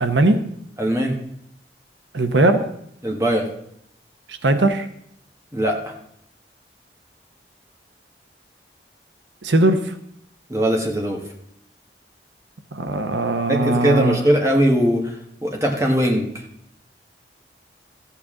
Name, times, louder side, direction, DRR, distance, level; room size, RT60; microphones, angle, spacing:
voice 1, 0.0-0.5 2.1-2.7 4.3-4.9 9.4-10.0 12.7-14.2, right 2 dB, 90° right, 9 dB, 0.9 m, -19 dB
voice 2, 0.8-1.2 3.0-3.5 5.5-6.0 10.5-11.2 13.5-16.4, right 1 dB, 15° right, 1 dB, 1.4 m, -20 dB
14.0 x 8.6 x 3.8 m, 0.71 s
head